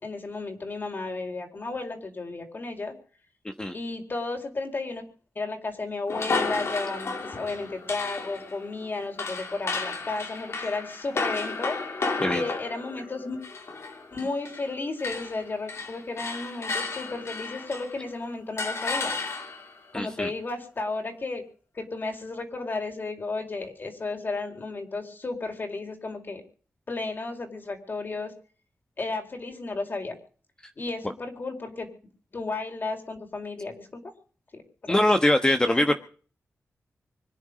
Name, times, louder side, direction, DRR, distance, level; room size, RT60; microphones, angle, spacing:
voice 1, 0.0-2.9 3.7-5.0 5.3-13.4 14.1-19.2 19.9-21.4 21.7-26.4 26.9-28.3 29.0-30.1 30.8-31.9 32.3-34.0 34.5-35.0 35.6-35.8, left 3 dB, 45° left, 4 dB, 4.7 m, -33 dB
sound 1, 6.1-14.7 15.0-18.0 18.6-19.8, left 3 dB, 60° left, 3.0 m, -33 dB
voice 2, 19.9-20.3 34.9-35.9, left 1 dB, 15° left, 6 dB, 1.2 m, -22 dB
25.0 x 10.5 x 5.2 m, 0.43 s
wide cardioid pair, 120°, 5 cm